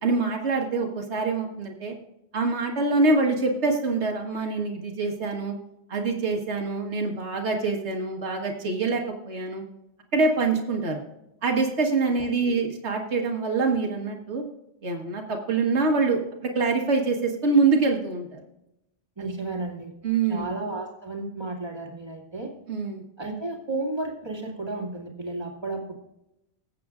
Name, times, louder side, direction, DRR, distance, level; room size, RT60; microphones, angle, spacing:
voice 1, 0.0-1.9 2.3-5.5 5.9-9.6 10.1-11.0 11.4-14.4 14.8-18.4 19.2-19.3 20.0-20.5 22.7-23.0, right 3 dB, 80° right, 2 dB, 1.7 m, -25 dB
voice 2, 19.2-19.9 20.3-22.5 23.2-25.9, right 2 dB, 25° right, -2 dB, 2.2 m, -33 dB
20.5 x 7.7 x 2.4 m, 0.86 s
omnidirectional pair, 1.1 m